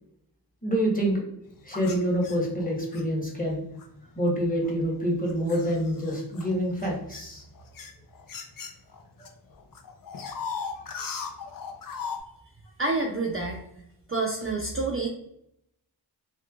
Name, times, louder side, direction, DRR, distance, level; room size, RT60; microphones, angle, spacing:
voice 1, 0.6-1.2 1.6-3.6 4.2-7.4, equal, 20° left, -2 dB, 1.0 m, -26 dB
sound 1, 1.8-3.0 3.8-4.0 4.6-9.3 9.6-12.2, left 5 dB, 50° left, 0.5 m, -38 dB
voice 2, 12.8-13.6 14.1-15.1, right 3 dB, 35° right, 0 dB, 0.4 m, -28 dB
3.1 x 2.2 x 2.3 m, 0.78 s
wide cardioid pair, 65°, 43 cm